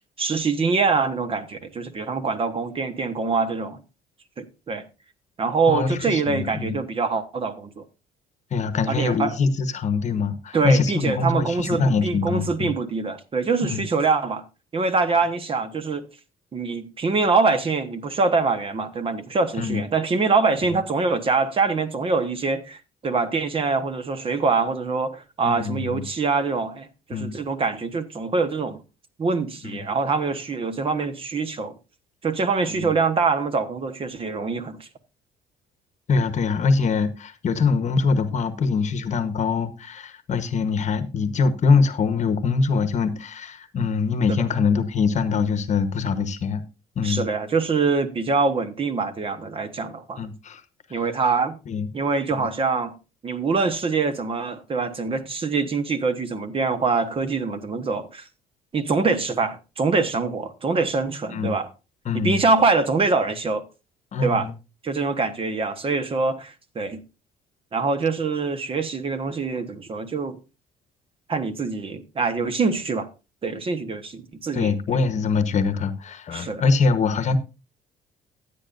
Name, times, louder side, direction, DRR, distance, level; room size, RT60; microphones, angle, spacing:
voice 1, 0.2-3.8 4.4-4.8 5.4-7.8 8.9-9.3 10.5-14.4 14.7-16.1 16.5-28.8 29.2-31.7 32.2-34.9 44.3-44.4 47.0-50.3 50.9-51.6 51.9-52.9 53.2-58.3 58.7-61.7 62.1-63.6 64.2-64.5 64.8-67.0 67.7-70.4 71.3-73.1 73.4-75.0 76.3-76.6, right 4 dB, 35° right, 1.1 m, -24 dB
voice 2, 5.7-6.8 8.5-12.7 13.6-13.8 19.6-19.8 25.4-26.0 27.1-27.4 29.6-29.8 32.7-32.9 36.1-46.6 47.0-47.2 50.2-50.6 51.7-51.9 52.4-52.5 61.3-61.5 62.1-62.4 64.1-64.5 74.5-77.4, left 4 dB, 45° left, 1.1 m, -23 dB
15.0 x 8.5 x 2.5 m
cardioid pair, 110°, 17 cm